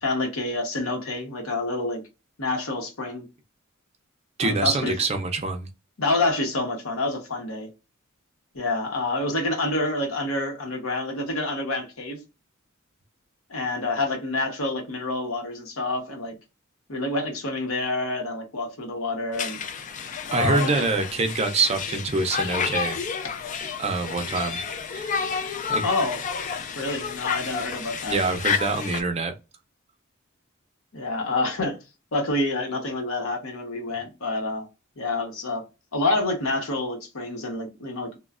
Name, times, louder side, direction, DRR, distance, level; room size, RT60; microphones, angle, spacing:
voice 1, 0.0-2.0 2.4-3.3 4.4-4.9 6.0-7.7 8.5-12.2 13.5-16.4 16.9-19.6 20.3-20.8 25.8-26.2 26.7-28.2 30.9-31.8 32.1-34.6 35.0-35.6 35.9-38.2, left 2 dB, 80° left, 0.9 m, -27 dB
voice 2, 4.4-5.7 20.3-23.0 23.8-24.6 24.9-25.3 25.7-25.8 28.1-29.3, right 3 dB, 30° right, 0.5 m, -25 dB
Conversation, 19.3-29.0, left 6 dB, 35° left, 0.3 m, -30 dB
3.1 x 2.2 x 2.3 m
head